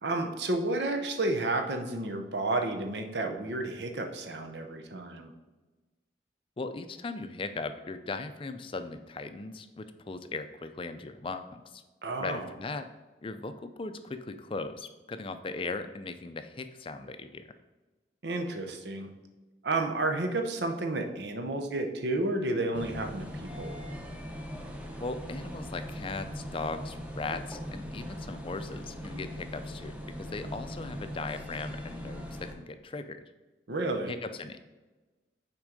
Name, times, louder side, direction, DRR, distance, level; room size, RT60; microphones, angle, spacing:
voice 1, 0.0-5.3 12.0-12.4 18.2-19.1 19.6-23.3 23.6-23.7 33.7-34.1, right 2 dB, 75° right, 5 dB, 0.8 m, -31 dB
voice 2, 6.6-11.8 12.2-12.9 13.2-17.5 25.0-33.2 34.1-34.6, left 3 dB, 30° left, 9 dB, 0.4 m, -38 dB
sound 1, 22.7-32.5, equal, 10° right, 0.8 m, -40 dB
6.1 x 4.5 x 5.1 m, 1.2 s
head